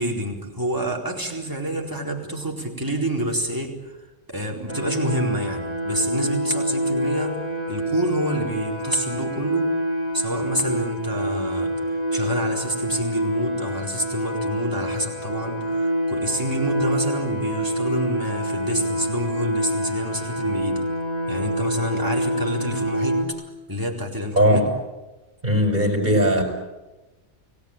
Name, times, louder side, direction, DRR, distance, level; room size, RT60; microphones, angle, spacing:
voice 1, 0.0-4.0 4.3-9.7 10.1-20.8 21.3-23.4 23.7-24.6 26.0-26.1, equal, 15° right, 0 dB, 4.4 m, -28 dB
sound 1, 4.7-23.2, equal, 30° left, 3.5 m, -26 dB
voice 2, 24.3-24.7 25.4-26.4, equal, 35° right, 4 dB, 5.7 m, -19 dB
29.5 x 18.5 x 9.1 m, 1.1 s
omnidirectional pair, 1.2 m